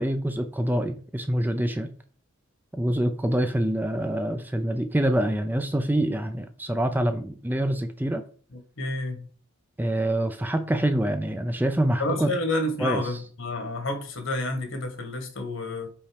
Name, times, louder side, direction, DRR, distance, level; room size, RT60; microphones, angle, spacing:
voice 1, 0.0-1.9 2.7-8.2 9.8-12.3 12.8-13.2, right 1 dB, 10° right, 0.4 m, -26 dB
voice 2, 8.8-9.3 12.0-15.9, left 2 dB, 65° left, 1.5 m, -29 dB
5.4 x 4.3 x 5.1 m
head